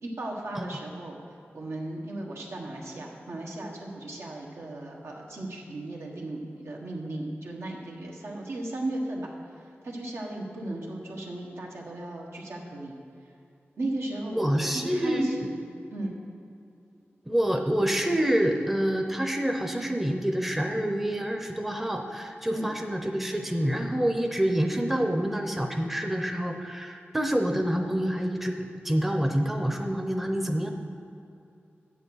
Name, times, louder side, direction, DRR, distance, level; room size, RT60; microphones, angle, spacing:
voice 1, 0.0-9.3 9.8-13.0 13.8-15.6 15.9-16.1 22.5-22.7, right 1 dB, 80° right, -1 dB, 1.5 m, -36 dB
voice 2, 14.4-15.5 17.3-30.7, equal, 5° right, 4 dB, 0.7 m, -27 dB
8.0 x 7.9 x 6.3 m, 2.6 s
wide cardioid pair, 115°, 4 cm